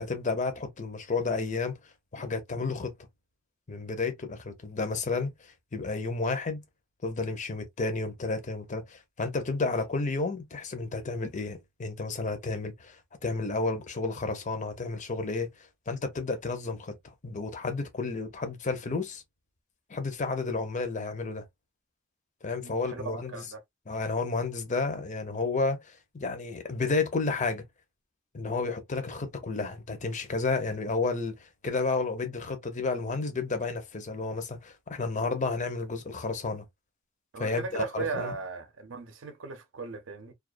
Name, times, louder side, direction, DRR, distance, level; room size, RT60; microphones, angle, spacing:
voice 1, 0.0-1.8 2.1-2.9 3.7-6.6 7.0-19.2 19.9-21.5 22.4-23.4 23.9-27.6 28.3-36.6 37.4-38.3, left 3 dB, 40° left, 0.7 m, -31 dB
voice 2, 22.6-23.6 37.3-40.3, right 3 dB, 70° right, 0.6 m, -37 dB
2.3 x 2.3 x 2.4 m
head